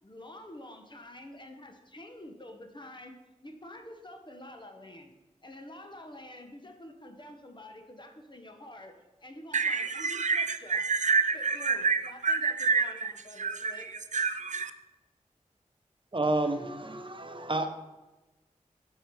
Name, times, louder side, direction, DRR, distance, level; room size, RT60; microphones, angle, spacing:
voice 1, 0.0-3.1 3.4-5.1 5.4-8.9 9.2-10.8 11.3-13.9, left 1 dB, 35° left, 1.2 m, -48 dB
voice 2, 9.5-14.7, right 5 dB, 65° right, 0.4 m, -28 dB
voice 3, 16.1-17.7, right 2 dB, 40° right, 0.9 m, -30 dB
7.8 x 5.8 x 4.8 m
cardioid pair, 45°, 13 cm